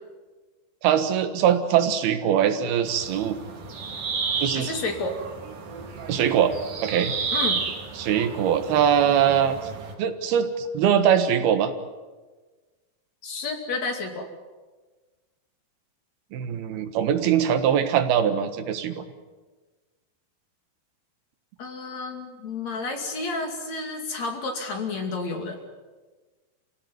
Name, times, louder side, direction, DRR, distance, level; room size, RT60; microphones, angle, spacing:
voice 1, 0.8-3.4 4.4-4.7 6.1-6.5 6.8-7.1 8.0-9.7 10.0-11.7 16.3-19.0, right 9 dB, 90° right, 8 dB, 3.5 m, -22 dB
sound 1, 2.9-9.9, right 5 dB, 70° right, 4.5 m, -32 dB
voice 2, 4.6-5.2 7.3-7.6 13.2-14.3 21.6-25.6, left 3 dB, 50° left, 4 dB, 3.6 m, -31 dB
28.5 x 16.5 x 9.4 m, 1.3 s
omnidirectional pair, 4.3 m